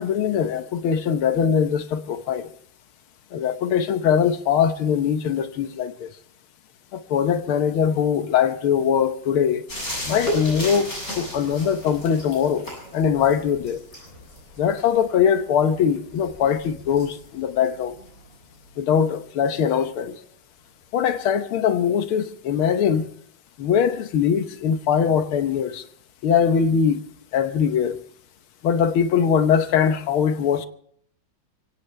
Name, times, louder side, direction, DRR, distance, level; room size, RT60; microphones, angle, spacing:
voice 1, 0.0-2.5 3.3-6.1 6.9-9.6 10.1-10.9 11.2-12.6 12.9-13.8 14.6-18.0 18.8-20.1 20.9-23.1 23.6-25.8 26.2-27.1 27.3-28.0 28.6-30.7, left 7 dB, 80° left, 10 dB, 1.9 m, -21 dB
sound 1, 9.7-19.1 21.1-21.2, equal, 40° left, 8.4 m, -35 dB
24.0 x 17.0 x 3.3 m, 0.64 s
omnidirectional pair, 2.3 m